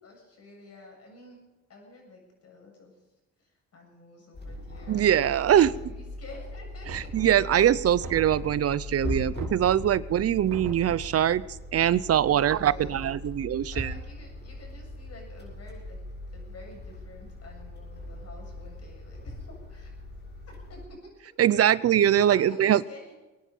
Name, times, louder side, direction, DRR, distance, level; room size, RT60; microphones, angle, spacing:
voice 1, 0.0-1.4 1.7-3.0 3.4-5.2 5.5-7.1 8.0-8.1 12.1-13.0 13.7-16.0 16.3-19.9 20.5-21.1 22.3-23.1, left 2 dB, 55° left, 1 dB, 7.5 m, -49 dB
sound 1, 4.3-20.9, left 1 dB, 35° left, 7.2 m, -40 dB
voice 2, 4.9-5.7 6.9-11.4 11.7-13.9 21.4-22.8, right 10 dB, 55° right, 19 dB, 0.6 m, -22 dB
Knock, 6.9-7.6 8.0-8.8 9.3-10.0 10.5-11.2, right 4 dB, 70° right, 3.3 m, -41 dB
22.5 x 10.0 x 5.5 m, 1.1 s
cardioid pair, 90°, 30 cm